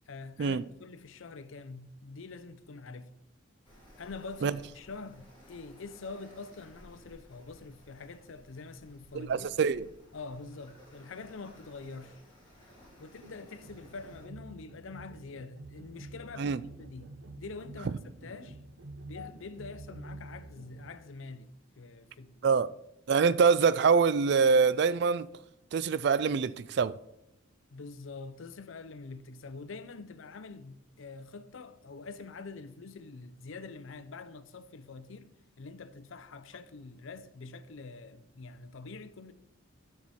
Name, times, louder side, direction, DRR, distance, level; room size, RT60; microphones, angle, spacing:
voice 1, 0.1-3.1 4.0-9.5 10.1-12.2 13.0-17.1 17.4-18.6 19.1-22.6 27.7-35.3 35.6-39.3, left 4 dB, 70° left, 0.5 m, -45 dB
sound 1, 3.6-14.3, equal, 25° left, 2.8 m, -57 dB
voice 2, 9.1-9.8 16.4-16.6 22.4-22.7 23.1-25.3 25.7-27.0, right 5 dB, 55° right, 0.3 m, -25 dB
sound 2, 13.2-21.0, right 2 dB, 70° right, 0.8 m, -48 dB
13.0 x 4.7 x 4.2 m
head